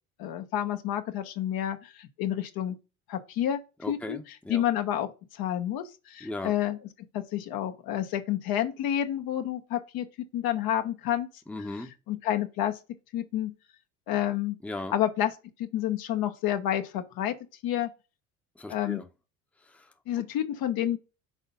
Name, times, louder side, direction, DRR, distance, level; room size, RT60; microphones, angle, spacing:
voice 1, 0.2-2.8 3.1-3.6 3.9-4.2 4.5-6.8 7.1-11.3 12.1-12.8 13.1-13.5 14.1-14.6 14.9-15.3 15.6-17.4 17.6-17.9 18.7-19.0 20.1-21.0, left 11 dB, 60° left, 1.1 m, -29 dB
voice 2, 3.8-4.6 6.2-6.5 11.5-11.9 14.6-14.9 18.6-19.1 19.6-19.9, left 2 dB, 5° left, 0.9 m, -37 dB
6.1 x 3.8 x 5.5 m
hypercardioid pair, 70°, 41 cm